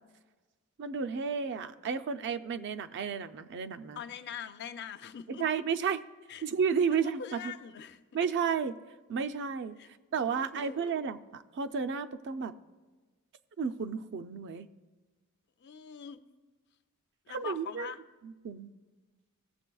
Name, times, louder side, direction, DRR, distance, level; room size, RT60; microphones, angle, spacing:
voice 1, 0.8-4.0 5.3-6.0 6.4-7.4 8.1-8.8 9.1-9.8 10.1-12.5 13.6-14.7 17.3-17.9 18.2-18.7, right 6 dB, 55° right, 10 dB, 0.4 m, -32 dB
voice 2, 4.0-5.4 6.3-6.5 7.2-8.0 9.8-9.9 10.3-10.9 15.6-16.2 17.3-18.0, left 7 dB, 50° left, 10 dB, 0.4 m, -43 dB
17.5 x 7.3 x 2.3 m, 1.3 s
head